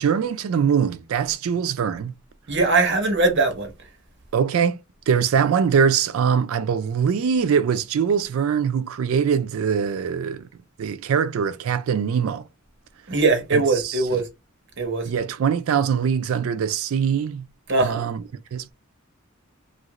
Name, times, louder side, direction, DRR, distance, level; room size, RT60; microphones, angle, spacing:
voice 1, 0.0-2.1 4.3-4.8 5.1-10.5 10.8-12.4 13.5-14.2 15.0-17.5 17.8-18.2 18.5-18.7, right 7 dB, 75° right, 0.3 m, -22 dB
voice 2, 2.5-3.7 13.1-14.3 14.8-15.1 17.7-18.1, right 3 dB, 60° right, 0.9 m, -21 dB
2.8 x 2.5 x 2.9 m
head